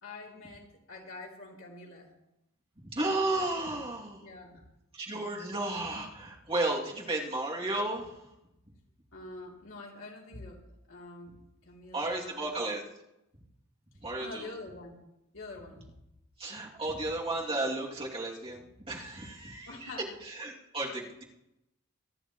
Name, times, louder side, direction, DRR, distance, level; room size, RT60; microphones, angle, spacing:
voice 1, 0.0-2.1 4.2-4.6 9.1-10.6 10.9-11.4 11.6-12.5 14.2-15.0 15.3-15.9 19.7-20.1, left 2 dB, 75° left, -3 dB, 3.4 m, -46 dB
voice 2, 2.8-4.2 4.9-8.2 11.9-12.8 14.0-14.5 16.4-18.6 18.9-19.9 20.2-21.2, right 2 dB, 30° right, -4 dB, 2.7 m, -33 dB
25.5 x 10.5 x 3.1 m, 0.88 s
head